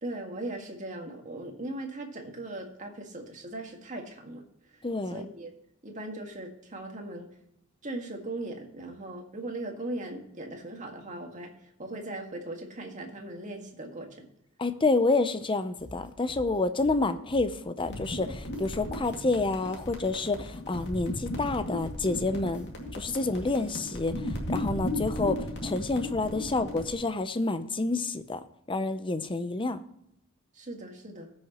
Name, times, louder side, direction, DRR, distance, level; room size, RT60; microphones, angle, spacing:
voice 1, 0.0-4.4 5.1-5.5 5.8-7.3 7.8-14.3 30.6-31.3, right 2 dB, 35° right, 2 dB, 1.9 m, -39 dB
voice 2, 4.8-5.3 14.6-28.4 28.7-29.8, left 3 dB, 25° left, 10 dB, 0.7 m, -29 dB
sound 1, 15.8-23.8, left 1 dB, 5° right, 1.7 m, -47 dB
sound 2, 17.9-26.9, left 1 dB, 55° left, 2.3 m, -36 dB
19.0 x 6.4 x 3.0 m, 0.77 s
head